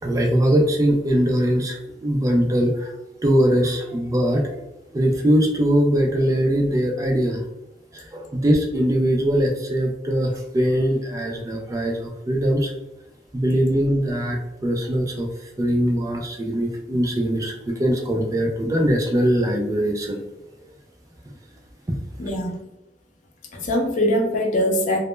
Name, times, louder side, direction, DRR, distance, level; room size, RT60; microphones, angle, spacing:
voice 1, 0.0-2.9 3.2-4.7 4.9-7.4 7.9-12.7 13.3-20.2 21.3-21.4 21.9-22.0 22.2-22.4, equal, 20° right, 1 dB, 0.3 m, -21 dB
voice 2, 22.2-22.7 23.5-25.0, left 1 dB, 45° left, 1 dB, 0.5 m, -22 dB
2.1 x 2.0 x 3.0 m, 0.89 s
head